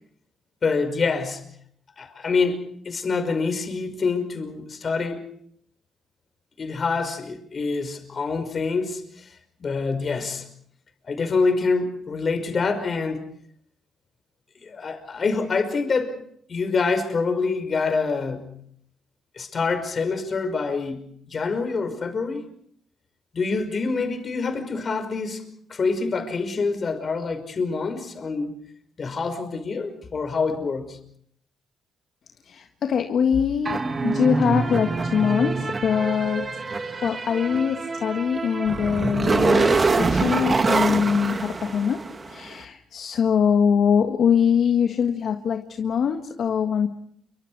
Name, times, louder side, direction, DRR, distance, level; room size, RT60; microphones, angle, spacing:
voice 1, 0.6-1.4 2.0-5.2 6.6-9.3 9.6-10.5 11.0-13.2 14.6-16.2 16.5-18.5 19.4-22.5 23.3-25.4 25.7-28.5 29.0-31.0, left 4 dB, 40° left, 5.5 m, -26 dB
voice 2, 32.4-36.5 37.0-42.0 42.3-46.9, left 7 dB, 60° left, 1.8 m, -23 dB
sound 1, 33.6-42.3, right 3 dB, 30° right, 1.8 m, -24 dB
29.0 x 24.0 x 4.8 m
cardioid pair, 90°, 0 cm